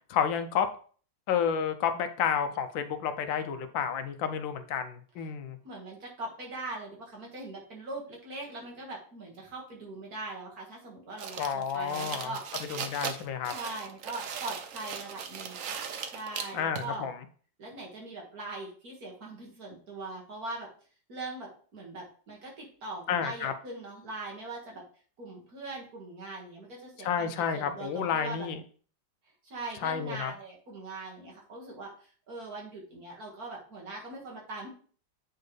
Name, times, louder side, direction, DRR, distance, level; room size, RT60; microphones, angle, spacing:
voice 1, 0.1-0.7 1.3-5.6 11.4-12.3 12.7-13.5 16.5-17.2 23.1-23.5 27.0-28.6 29.8-30.3, left 7 dB, 80° left, 9 dB, 1.4 m, -30 dB
voice 2, 5.6-12.5 13.5-15.8 16.1-17.1 17.6-20.7 21.1-24.8 25.2-28.5 29.4-34.7, right 2 dB, 50° right, -2 dB, 2.2 m, -41 dB
sound 1, 11.2-17.0, right 7 dB, 70° right, 0.8 m, -38 dB
8.3 x 4.5 x 3.2 m, 0.43 s
omnidirectional pair, 2.1 m